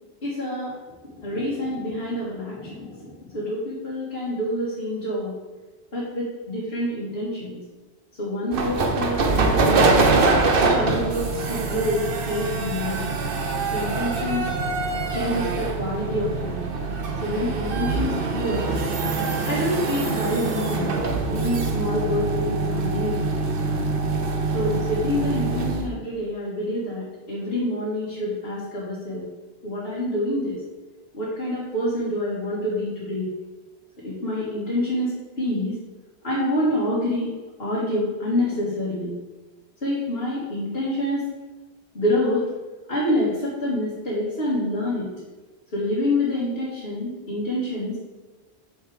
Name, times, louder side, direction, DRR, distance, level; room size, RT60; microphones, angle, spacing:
voice 1, 0.2-0.7 1.1-5.3 5.9-7.6 8.2-10.2 10.7-13.1 13.7-14.5 15.1-16.6 17.2-18.7 19.5-20.9 21.3-23.2 24.5-29.2 29.6-30.6 31.1-33.3 34.0-35.8 36.2-37.3 37.6-39.1 39.8-41.3 41.9-42.5 42.9-45.1 45.7-48.0, left 1 dB, 65° left, -8 dB, 2.1 m, -27 dB
sound 1, 8.5-25.9, right 3 dB, 60° right, 1.0 m, -24 dB
6.5 x 5.6 x 4.9 m, 1.2 s
omnidirectional pair, 1.1 m